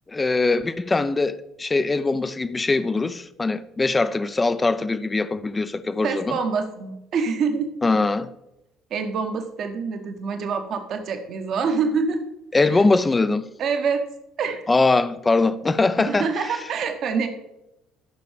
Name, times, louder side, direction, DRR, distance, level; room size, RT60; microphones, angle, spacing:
voice 1, 0.1-6.4 7.8-8.3 12.5-13.5 14.7-16.6, left 3 dB, 20° left, 0.6 m, -22 dB
voice 2, 6.0-7.7 8.9-12.2 12.5-12.6 13.6-14.0 14.4-14.6 16.0-17.3, right 5 dB, 50° right, 1.1 m, -26 dB
11.5 x 6.2 x 5.0 m
figure-of-eight pair, 55°, 0 cm